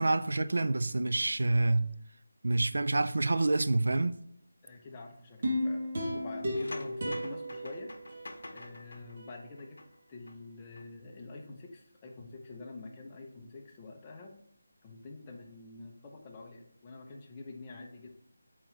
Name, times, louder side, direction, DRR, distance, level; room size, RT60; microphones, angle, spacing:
voice 1, 0.0-2.0 2.4-4.2, right 2 dB, 70° right, 0.3 m, -27 dB
voice 2, 4.6-7.9 8.5-9.8 10.1-14.3 14.8-18.1, left 3 dB, 15° left, 0.7 m, -47 dB
sound 1, 5.4-8.7 9.2-9.3, equal, 40° right, 1.2 m, -34 dB
sound 2, 6.5-10.4 10.6-10.8, left 2 dB, 75° left, 0.8 m, -48 dB
8.1 x 3.8 x 3.2 m
figure-of-eight pair, 175°, 0 cm